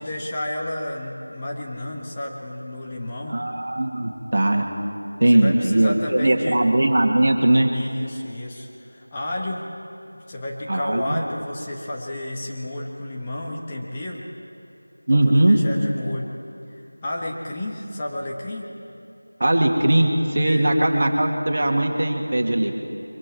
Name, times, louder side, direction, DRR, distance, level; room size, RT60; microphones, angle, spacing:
voice 1, 0.0-3.4 5.3-6.6 7.7-9.6 10.1-14.3 15.1-16.4 17.0-18.7 20.4-20.7, left 1 dB, 15° left, -3 dB, 1.3 m, -32 dB
voice 2, 3.3-4.7 5.2-7.7 10.7-11.2 15.1-15.6 17.9-18.0 19.4-22.7, right 1 dB, 45° right, 3 dB, 1.9 m, -19 dB
24.0 x 23.5 x 4.7 m, 2.8 s
figure-of-eight pair, 170°, 0 cm